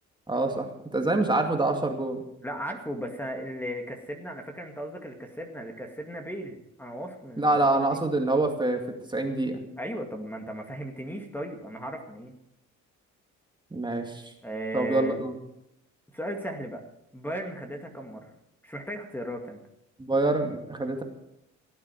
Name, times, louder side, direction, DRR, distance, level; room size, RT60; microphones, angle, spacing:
voice 1, 0.3-2.2 7.4-8.8 9.1-9.6 13.7-14.3 14.7-15.3 20.0-21.0, right 2 dB, 15° right, 3 dB, 2.3 m, -26 dB
voice 2, 2.4-8.0 9.8-12.4 14.4-15.2 16.1-16.8 17.1-18.3 18.6-19.6, equal, 5° left, 3 dB, 2.2 m, -36 dB
17.5 x 8.9 x 7.5 m, 0.82 s
cardioid pair, 90°, 30 cm